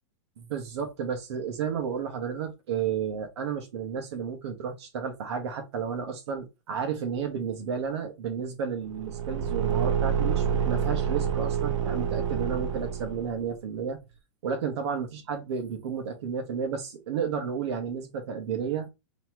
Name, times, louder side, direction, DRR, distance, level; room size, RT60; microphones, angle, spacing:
voice 1, 0.4-14.0 14.4-18.9, right 7 dB, 60° right, 1.4 m, -32 dB
Car / Engine, 8.9-13.4, right 7 dB, 90° right, 0.7 m, -28 dB
4.0 x 3.2 x 3.0 m
supercardioid pair, 175°, 16 cm